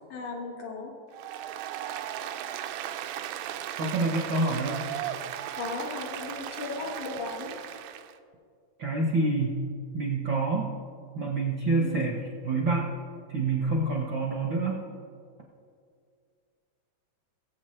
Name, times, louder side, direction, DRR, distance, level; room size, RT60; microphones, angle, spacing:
voice 1, 0.1-0.9 5.6-7.5 11.8-12.1, left 4 dB, 75° left, -1 dB, 3.1 m, -36 dB
Applause, 1.1-8.1, right 11 dB, 85° right, 2.1 m, -36 dB
voice 2, 3.8-4.9 8.8-9.6 9.9-10.7 11.1-12.9 13.3-14.8, right 3 dB, 65° right, -1 dB, 1.2 m, -27 dB
20.0 x 8.0 x 3.3 m, 2.3 s
omnidirectional pair, 3.6 m